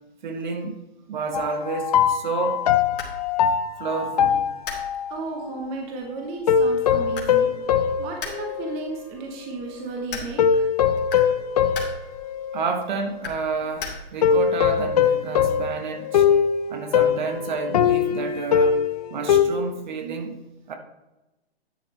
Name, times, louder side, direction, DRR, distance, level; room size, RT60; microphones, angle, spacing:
voice 1, 0.2-0.8 1.1-2.6 3.8-4.4 12.5-16.3 16.7-18.8 19.1-20.8, right 4 dB, 45° right, 1.3 m, -30 dB
sound 1, 1.3-5.1 6.5-9.0 9.5-9.6 10.4-12.9 14.2-19.4, left 7 dB, 40° left, 0.6 m, -22 dB
sound 2, 2.4-14.4, left 4 dB, 55° left, 2.6 m, -41 dB
voice 2, 5.1-10.7, right 3 dB, 20° right, 1.0 m, -34 dB
10.5 x 7.9 x 3.2 m
hypercardioid pair, 150°, 32 cm